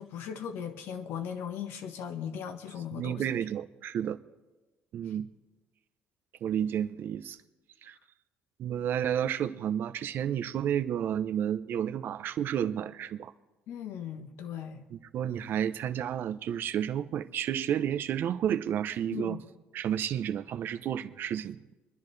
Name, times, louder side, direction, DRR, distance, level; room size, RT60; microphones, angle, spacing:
voice 1, 0.0-3.2 13.7-14.8 19.1-19.4, left 8 dB, 70° left, 1.2 m, -38 dB
voice 2, 2.9-4.2 4.9-5.3 6.4-7.4 7.8-8.0 8.6-13.3 14.9-19.4 19.7-21.6, right 9 dB, 60° right, 0.7 m, -31 dB
24.5 x 10.5 x 3.3 m
cardioid pair, 90°, 4 cm